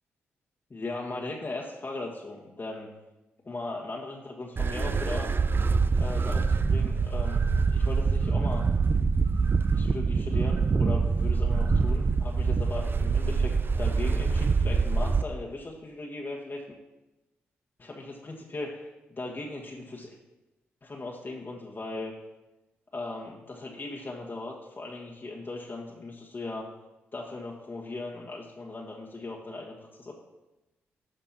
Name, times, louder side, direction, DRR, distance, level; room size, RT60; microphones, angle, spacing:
voice 1, 0.7-2.9 3.4-5.3 5.9-7.4 7.7-8.6 9.8-16.6 17.8-20.1 20.8-22.2 22.9-26.7 27.1-30.1, left 2 dB, 40° left, -2 dB, 1.5 m, -38 dB
sound 1, 4.6-15.2, right 4 dB, 40° right, 0.5 m, -25 dB
12.0 x 5.3 x 4.3 m, 1.0 s
hypercardioid pair, 40°, 6 cm